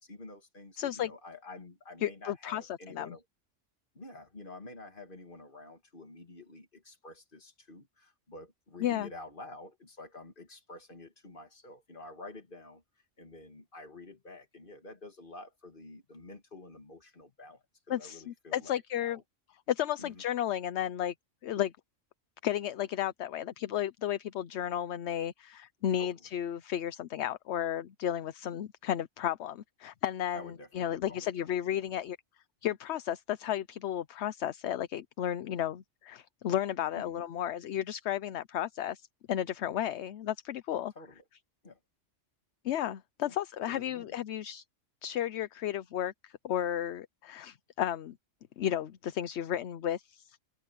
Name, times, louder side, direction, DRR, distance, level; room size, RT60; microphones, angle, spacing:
voice 1, 0.0-3.2 3.9-12.8 13.2-19.2 20.0-20.2 26.0-26.1 30.3-31.6 36.9-37.3 41.0-41.2 41.6-41.8 43.3-43.4 43.7-44.2, left 2 dB, 45° left, 2.4 m, -49 dB
voice 2, 0.8-1.1 2.0-3.2 8.8-9.1 17.9-19.2 19.7-21.1 21.4-21.7 22.4-32.2 32.6-40.9 42.6-44.6 45.0-48.2 48.6-50.4, left 11 dB, 65° left, 0.9 m, -33 dB
open air
omnidirectional pair, 1.3 m